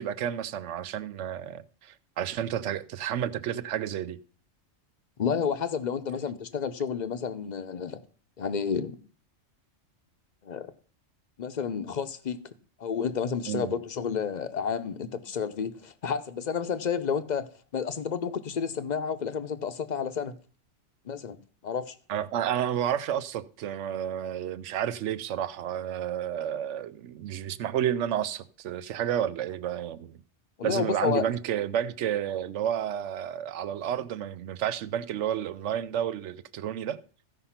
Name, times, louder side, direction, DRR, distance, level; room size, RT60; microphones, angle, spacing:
voice 1, 0.0-4.2 13.5-13.8 22.1-30.2 30.6-37.0, right 10 dB, 75° right, 0.9 m, -31 dB
voice 2, 5.2-8.0 8.4-9.0 10.4-10.7 11.4-12.4 12.8-17.4 17.7-20.3 21.1-21.4 21.6-21.9 30.6-31.2, left 6 dB, 45° left, 0.7 m, -30 dB
15.0 x 5.4 x 5.7 m
omnidirectional pair, 1.3 m